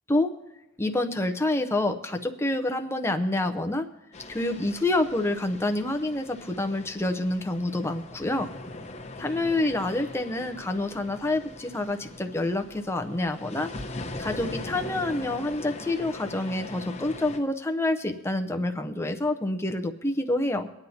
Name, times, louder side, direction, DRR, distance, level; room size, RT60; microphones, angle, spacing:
voice 1, 0.8-3.9 4.3-8.5 9.2-13.7 14.2-20.7, left 2 dB, 10° left, 6 dB, 0.6 m, -27 dB
sound 1, 4.1-17.4, left 2 dB, 30° left, 1.0 m, -41 dB
23.5 x 9.4 x 2.8 m, 0.97 s
head